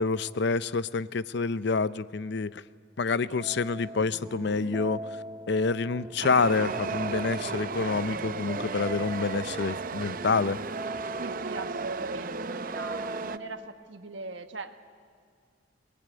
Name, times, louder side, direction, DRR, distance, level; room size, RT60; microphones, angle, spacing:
voice 1, 0.0-2.6 3.0-5.2 5.5-10.6, left 4 dB, 65° left, 16 dB, 0.6 m, -27 dB
sound 1, 3.4-13.6, right 1 dB, 25° right, 1.6 m, -41 dB
Chatter / Subway metro underground, 6.2-13.4, right 5 dB, 50° right, 0.6 m, -35 dB
voice 2, 11.2-14.8, right 3 dB, 85° right, 7 dB, 1.5 m, -41 dB
27.0 x 19.5 x 9.4 m, 2.2 s
head